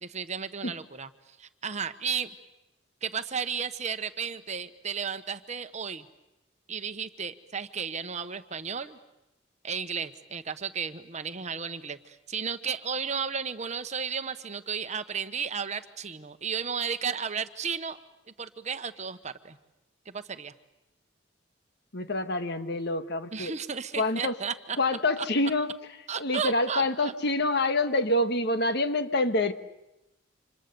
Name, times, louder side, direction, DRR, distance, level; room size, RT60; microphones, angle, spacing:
voice 1, 0.0-1.1 1.4-2.3 3.0-6.1 6.7-9.0 9.6-18.0 18.4-19.6 20.1-20.5 23.3-24.8 25.2-25.3 26.1-27.1, right 6 dB, 35° right, 10 dB, 1.1 m, -33 dB
voice 2, 21.9-23.5 24.0-24.4 24.8-25.7 26.2-29.5, left 2 dB, 60° left, 8 dB, 1.5 m, -26 dB
29.5 x 26.5 x 6.9 m, 0.93 s
head